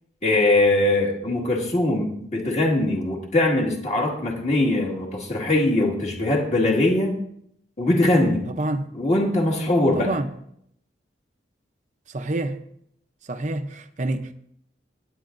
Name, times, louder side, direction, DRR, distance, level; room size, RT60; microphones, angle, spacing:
voice 1, 0.2-7.2 7.8-8.5 8.9-10.1, left 2 dB, 40° left, 1.8 m, -21 dB
voice 2, 8.5-8.9 9.9-10.3 12.1-12.6 13.2-14.3, right 2 dB, 40° right, 0.6 m, -27 dB
17.5 x 9.5 x 2.6 m
head